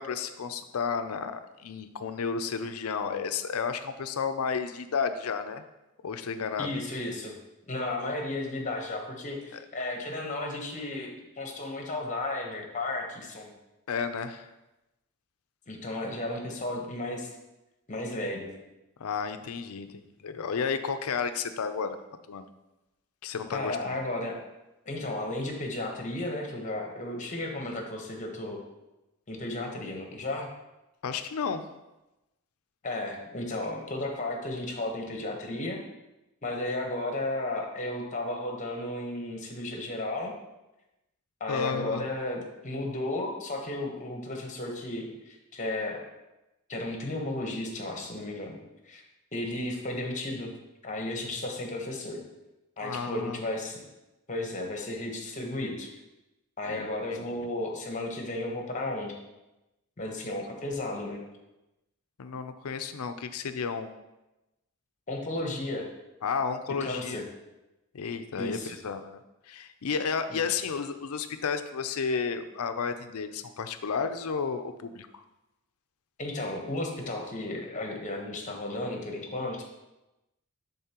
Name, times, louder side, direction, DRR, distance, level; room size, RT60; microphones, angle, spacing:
voice 1, 0.0-5.6 6.0-6.7 9.5-9.6 13.9-14.5 19.0-22.0 22.3-22.5 23.2-24.0 31.0-31.7 41.5-42.0 52.8-53.4 56.7-57.5 62.2-63.9 66.2-67.2 67.9-69.2 69.5-75.1, left 5 dB, 75° left, 9 dB, 0.5 m, -32 dB
voice 2, 6.6-7.3 7.7-13.5 15.7-17.3 17.9-18.5 23.5-24.4 24.9-28.6 29.3-30.5 32.8-35.8 36.4-40.3 41.4-46.1 46.7-48.6 48.8-49.0 49.3-50.5 50.8-52.2 52.8-53.8 54.3-55.9 56.6-59.1 60.0-61.2 65.1-65.9 66.8-67.2 68.4-68.8 70.3-70.5 76.2-79.6, left 2 dB, 35° left, 2 dB, 1.1 m, -34 dB
10.0 x 4.0 x 2.9 m, 0.98 s
head